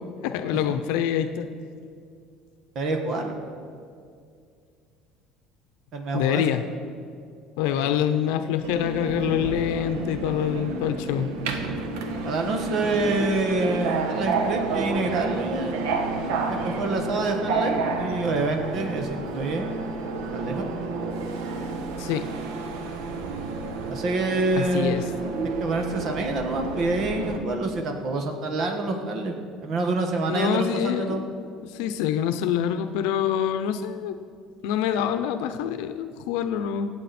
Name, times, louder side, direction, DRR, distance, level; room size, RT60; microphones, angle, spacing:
voice 1, 0.2-1.5 6.1-6.6 7.6-11.3 22.0-22.3 24.6-25.0 30.3-31.2 31.6-34.1 34.6-36.9, left 9 dB, 80° left, 9 dB, 0.7 m, -26 dB
voice 2, 2.7-3.4 5.9-6.4 7.8-7.9 12.2-19.7 20.3-20.7 23.9-25.3 25.6-29.4 29.6-31.2, right 2 dB, 40° right, 4 dB, 1.6 m, -27 dB
Subway metro underground, 8.6-27.4, right 4 dB, 85° right, 1.3 m, -30 dB
25.0 x 8.6 x 4.3 m, 2.3 s
cardioid pair, 155°, 0 cm